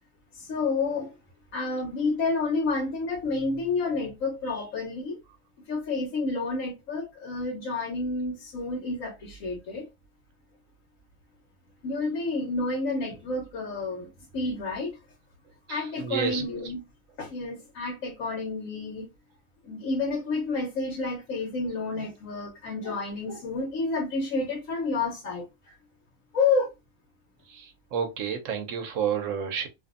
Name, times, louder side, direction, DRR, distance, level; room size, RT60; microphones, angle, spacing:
voice 1, 0.3-1.1 1.5-5.2 5.7-9.9 11.8-15.0 15.7-16.8 17.2-19.1 19.6-25.7 26.3-26.7, left 3 dB, 75° left, 1.2 m, -30 dB
voice 2, 15.7-16.4 27.5-29.7, right 7 dB, 75° right, 1.0 m, -30 dB
2.6 x 2.6 x 2.4 m
omnidirectional pair, 1.4 m